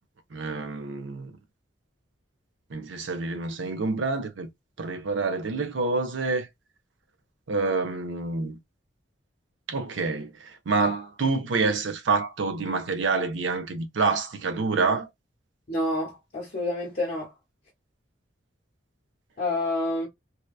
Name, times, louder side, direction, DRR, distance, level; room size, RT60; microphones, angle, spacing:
voice 1, 0.3-1.4 2.7-4.5 4.8-6.5 7.5-8.6 9.7-15.1, right 4 dB, 70° right, 0.5 m, -27 dB
voice 2, 15.7-17.3 19.4-20.1, left 1 dB, 50° left, 0.8 m, -28 dB
2.8 x 2.2 x 2.3 m
head